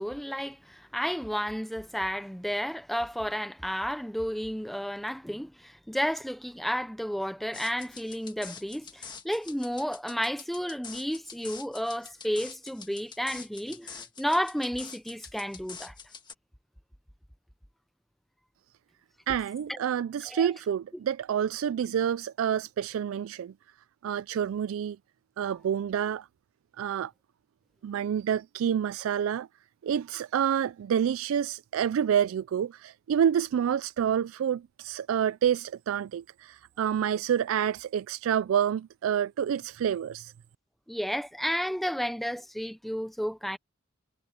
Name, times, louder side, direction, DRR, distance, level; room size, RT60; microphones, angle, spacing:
voice 1, 0.0-15.9 19.7-19.8 20.3-20.5 40.9-43.6, equal, ahead, 0.6 m, -32 dB
sound 1, 7.5-16.3, left 6 dB, 20° left, 1.6 m, -45 dB
voice 2, 19.3-23.5 24.0-25.0 25.4-26.3 26.8-27.1 27.8-29.5 29.8-40.3, right 8 dB, 70° right, 0.3 m, -28 dB
head